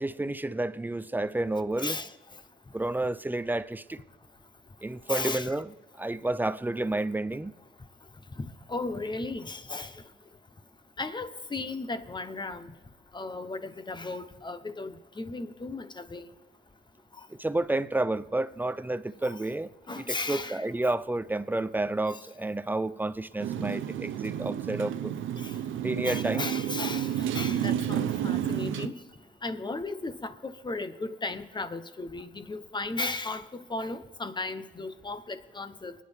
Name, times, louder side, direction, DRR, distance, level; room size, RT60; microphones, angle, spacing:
voice 1, 0.0-2.0 2.7-4.0 4.8-5.7 6.0-7.5 17.4-19.7 20.0-25.1 25.8-26.5, right 2 dB, 10° right, 0.5 m, -30 dB
voice 2, 1.8-2.1 5.1-5.5 8.4-9.9 11.0-12.7 13.1-16.3 19.2-19.4 19.9-20.9 25.4-25.6 26.0-29.0 29.4-35.9, left 3 dB, 20° left, 1.1 m, -35 dB
Motorcycle, 23.4-28.9, right 10 dB, 75° right, 0.8 m, -31 dB
24.5 x 10.0 x 3.6 m
cardioid pair, 90°, 20 cm